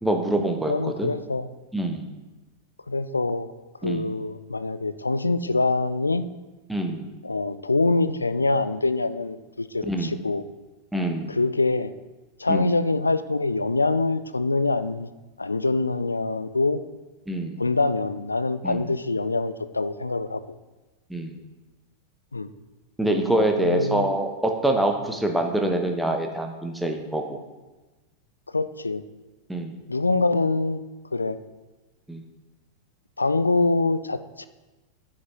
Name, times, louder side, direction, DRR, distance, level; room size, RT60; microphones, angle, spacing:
voice 1, 0.0-1.1 1.7-2.1 3.8-4.1 6.7-7.1 9.9-10.2 10.9-11.4 12.5-12.6 17.3-17.6 18.6-18.8 21.1-21.4 23.0-27.4 29.5-29.7 32.1-32.2, right 1 dB, 5° right, 3 dB, 1.0 m, -25 dB
voice 2, 0.7-1.5 2.9-3.5 3.8-6.2 7.2-10.4 11.3-11.9 12.4-15.1 15.4-16.8 17.6-20.4 22.3-22.5 23.6-24.1 28.5-29.0 29.9-30.8 31.1-31.4 33.2-34.5, left 3 dB, 80° left, 13 dB, 0.4 m, -24 dB
9.6 x 5.7 x 3.1 m, 1.2 s
figure-of-eight pair, 90°, 0 cm